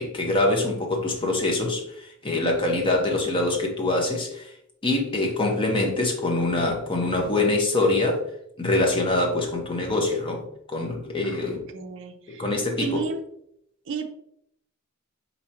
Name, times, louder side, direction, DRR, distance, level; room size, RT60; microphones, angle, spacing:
voice 1, 0.0-4.5 4.8-8.2 8.6-10.4 10.7-11.6 12.3-13.0, left 2 dB, 25° left, 1 dB, 0.7 m, -24 dB
voice 2, 11.2-12.4 12.8-13.2 13.9-14.1, right 5 dB, 55° right, 6 dB, 0.5 m, -33 dB
4.5 x 2.8 x 2.8 m, 0.74 s
head